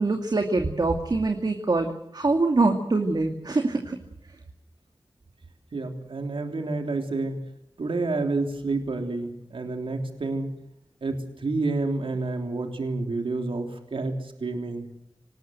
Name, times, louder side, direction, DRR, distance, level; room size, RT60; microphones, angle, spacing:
voice 1, 0.0-4.0, right 3 dB, 50° right, 4 dB, 2.5 m, -24 dB
voice 2, 5.7-7.4 7.8-10.5 11.0-14.8, right 3 dB, 80° right, 4 dB, 3.4 m, -29 dB
25.5 x 19.5 x 7.9 m, 0.79 s
wide cardioid pair, 85°, 9 cm